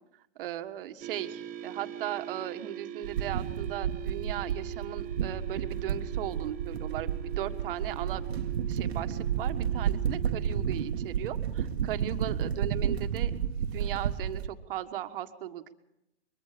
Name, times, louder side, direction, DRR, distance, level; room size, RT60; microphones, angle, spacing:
voice 1, 0.4-8.2 8.7-13.3 13.6-15.7, right 12 dB, 55° right, 8 dB, 1.6 m, -37 dB
sound 1, 1.0-11.3, right 10 dB, 25° right, 1.6 m, -43 dB
sound 2, 3.0-14.5, right 8 dB, 70° right, 1.4 m, -31 dB
23.5 x 22.5 x 5.1 m, 0.87 s
hypercardioid pair, 130°, 33 cm